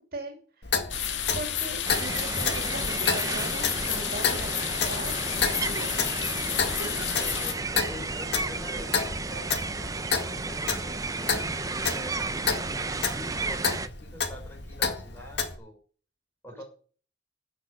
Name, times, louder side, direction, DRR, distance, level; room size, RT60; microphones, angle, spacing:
voice 1, 0.1-0.8 1.3-6.1 6.7-7.0, right 2 dB, 50° right, 4 dB, 2.8 m, -39 dB
Clock, 0.6-15.6, left 5 dB, 60° left, 2.0 m, -31 dB
sound 1, 0.9-7.5, left 9 dB, 80° left, 2.0 m, -31 dB
sound 2, 1.8-13.9, right 3 dB, 20° right, 0.7 m, -33 dB
voice 2, 7.1-9.5 10.3-15.8 16.4-16.6, left 1 dB, 10° left, 0 dB, 4.4 m, -45 dB
13.0 x 6.3 x 8.6 m, 0.42 s
head